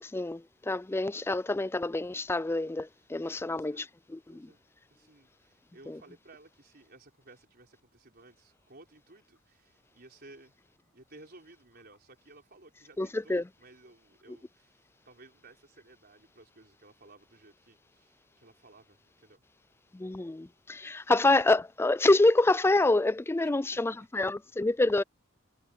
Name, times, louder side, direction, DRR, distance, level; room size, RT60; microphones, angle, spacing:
voice 1, 0.0-3.8 4.1-4.5 5.9-6.0 13.0-13.4 19.9-25.0, left 2 dB, 10° left, 0.3 m, -27 dB
voice 2, 3.2-3.9 4.3-4.6 4.9-10.6 10.9-19.4 23.4-23.8, right 2 dB, 50° right, 4.2 m, -56 dB
head